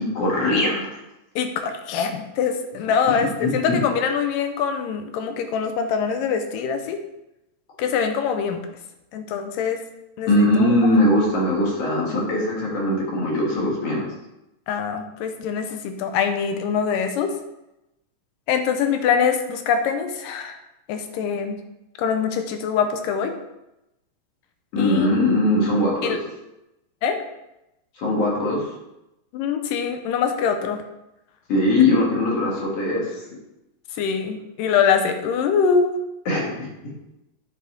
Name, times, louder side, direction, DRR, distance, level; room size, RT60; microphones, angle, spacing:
voice 1, 0.1-0.9 3.1-3.8 10.3-14.0 24.7-26.2 28.0-28.7 31.5-33.1 36.3-36.7, left 1 dB, 55° left, -2 dB, 2.5 m, -20 dB
voice 2, 1.4-7.0 7.8-8.6 9.1-9.8 10.2-10.5 14.7-17.3 18.5-20.6 20.9-21.6 22.0-23.3 24.8-25.1 26.0-26.2 27.0-27.2 29.3-30.8 34.0-36.0, left 6 dB, 85° left, 7 dB, 2.4 m, -23 dB
9.4 x 5.8 x 3.7 m, 0.91 s
omnidirectional pair, 3.8 m